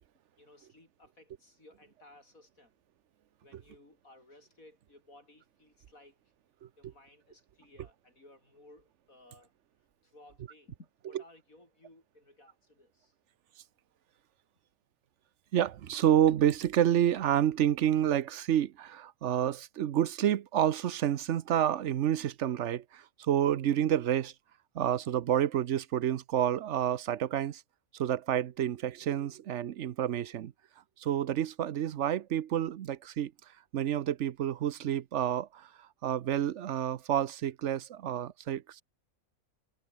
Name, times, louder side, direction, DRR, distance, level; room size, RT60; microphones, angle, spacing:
voice 1, 0.4-2.7 3.4-6.2 6.8-9.5 10.0-13.2, left 2 dB, 70° left, 7.7 m, -58 dB
voice 2, 15.5-24.3 24.7-27.6 27.9-30.5 31.0-33.3 33.7-38.8, right 10 dB, 60° right, 1.0 m, -29 dB
omnidirectional pair, 1.5 m